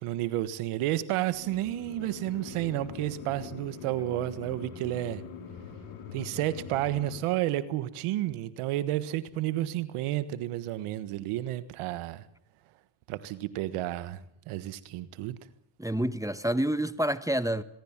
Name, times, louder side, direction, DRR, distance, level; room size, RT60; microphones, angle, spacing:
voice 1, 0.0-5.2 6.1-12.2 13.1-15.4, right 14 dB, 85° right, 1.5 m, -31 dB
sound 1, 1.3-7.2, left 6 dB, 85° left, 3.7 m, -43 dB
voice 2, 15.8-17.6, right 1 dB, 5° right, 1.3 m, -28 dB
25.0 x 21.5 x 7.4 m
supercardioid pair, 60°, 50 cm